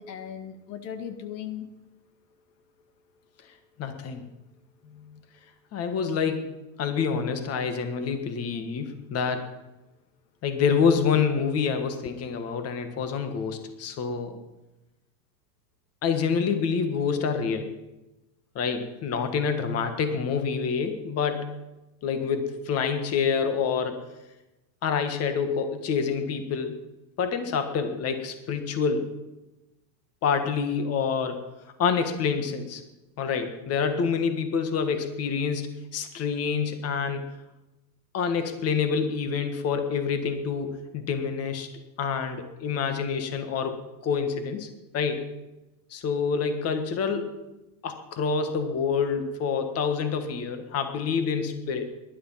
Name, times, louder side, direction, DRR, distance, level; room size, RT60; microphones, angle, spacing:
voice 1, 0.0-1.7 4.8-5.2, left 9 dB, 80° left, 8 dB, 2.0 m, -38 dB
voice 2, 3.8-4.2 5.7-6.5 6.8-9.5 10.4-14.4 16.0-17.7 18.5-21.5 22.0-24.1 24.8-26.8 27.2-29.1 30.2-31.4 31.8-32.8 33.2-37.3 38.1-41.7 42.0-43.7 44.0-44.7 44.9-45.3 45.9-47.3 47.8-51.9, left 6 dB, 30° left, 8 dB, 1.7 m, -27 dB
19.5 x 11.5 x 5.7 m, 1.0 s
supercardioid pair, 145°, 50 cm